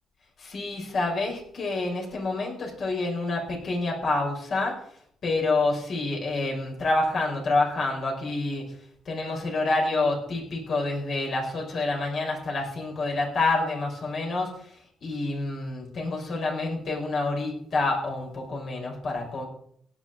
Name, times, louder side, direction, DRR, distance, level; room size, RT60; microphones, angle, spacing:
voice 1, 0.4-4.7 5.2-8.6 9.1-19.4, left 2 dB, 55° left, 0 dB, 5.5 m, -28 dB
17.0 x 9.6 x 4.5 m, 0.67 s
cardioid pair, 90°, 0 cm